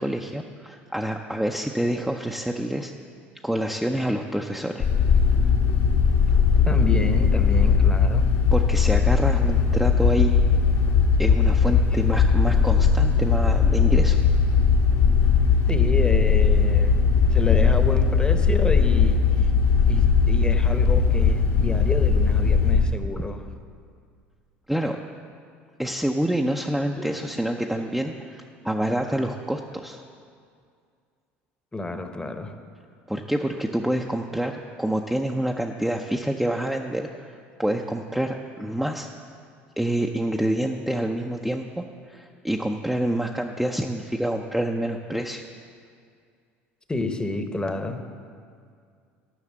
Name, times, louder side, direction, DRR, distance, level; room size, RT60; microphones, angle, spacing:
voice 1, 0.0-2.9 3.4-4.9 8.5-10.4 11.2-14.2 24.7-25.0 25.8-30.0 33.1-37.1 37.6-39.1 39.8-45.4, right 1 dB, ahead, 1 dB, 0.5 m, -27 dB
sound 1, 4.8-22.8, left 6 dB, 60° left, 1.2 m, -19 dB
voice 2, 6.7-8.3 10.5-10.6 11.9-12.0 15.7-19.5 19.9-23.5 27.0-27.8 31.7-32.6 46.9-48.0, left 2 dB, 15° left, 7 dB, 0.9 m, -30 dB
11.0 x 5.7 x 7.4 m, 2.2 s
hypercardioid pair, 75°, 6 cm